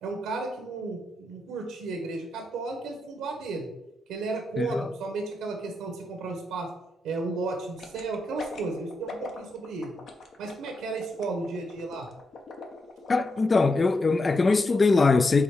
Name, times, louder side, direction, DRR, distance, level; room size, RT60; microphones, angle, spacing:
voice 1, 0.0-3.7 4.1-6.7 7.0-9.9 10.4-12.1, right 3 dB, 90° right, 1.1 m, -33 dB
voice 2, 4.6-4.9 13.1-15.4, left 3 dB, 30° left, 0.3 m, -22 dB
sound 1, 7.8-13.6 14.0-14.1, left 3 dB, 60° left, 1.1 m, -42 dB
4.9 x 4.0 x 4.9 m
cardioid pair, 90°, 0 cm